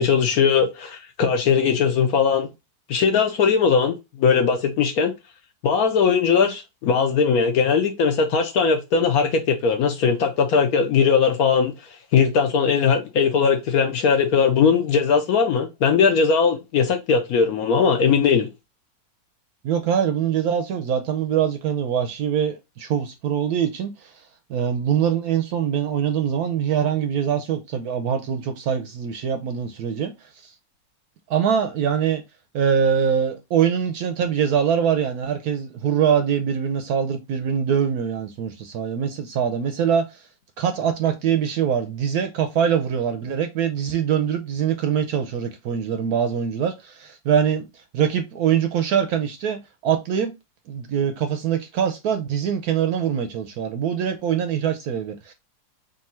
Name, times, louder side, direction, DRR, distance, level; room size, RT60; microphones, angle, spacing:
voice 1, 0.0-2.5 2.9-3.9 4.2-5.1 5.6-11.7 12.1-18.5, left 6 dB, 65° left, 1.0 m, -19 dB
voice 2, 19.6-24.1 24.5-30.1 30.4-30.5 31.3-32.2 32.5-40.2 40.6-50.3 50.7-55.3, right 8 dB, 70° right, 0.9 m, -23 dB
3.6 x 2.6 x 4.2 m
omnidirectional pair, 1.9 m